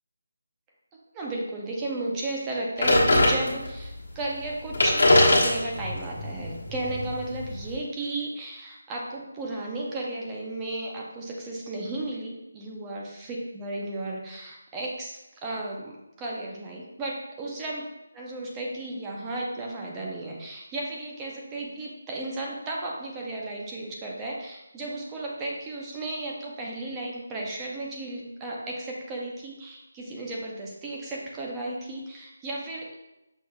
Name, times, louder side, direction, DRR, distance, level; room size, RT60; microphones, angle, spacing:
voice 1, 0.9-17.8 18.2-32.9, right 2 dB, 10° right, -2 dB, 0.5 m, -34 dB
sound 1, 2.8-3.9 4.4-4.5 4.7-7.7, left 1 dB, 60° left, 1.2 m, -22 dB
6.2 x 3.4 x 2.3 m, 0.93 s
figure-of-eight pair, 175°, 0 cm